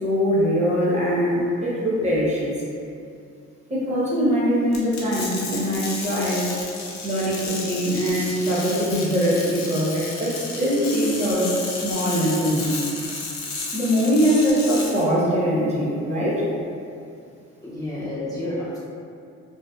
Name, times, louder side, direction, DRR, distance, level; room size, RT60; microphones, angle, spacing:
voice 1, 0.0-2.5 3.7-6.5 7.0-12.7 13.7-16.4, equal, 20° right, -8 dB, 0.8 m, -22 dB
sound 1, 4.7-15.0, left 3 dB, 65° left, 0.6 m, -33 dB
voice 2, 17.6-18.8, left 1 dB, 10° left, -11 dB, 0.5 m, -30 dB
2.7 x 2.0 x 2.3 m, 2.5 s
cardioid pair, 90°, 30 cm